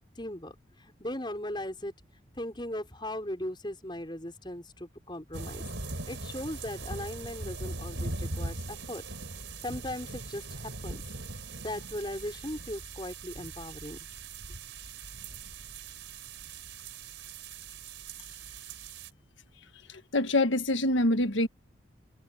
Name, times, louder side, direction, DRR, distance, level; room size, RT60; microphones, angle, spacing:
voice 1, 0.2-0.5 1.0-1.9 2.4-5.7 6.1-9.0 9.6-11.0 11.6-14.1, left 1 dB, 25° left, 5.5 m, -38 dB
sound 1, 5.3-19.1, right 3 dB, 80° right, 4.4 m, -40 dB
voice 2, 20.1-21.5, left 1 dB, 85° left, 1.5 m, -25 dB
head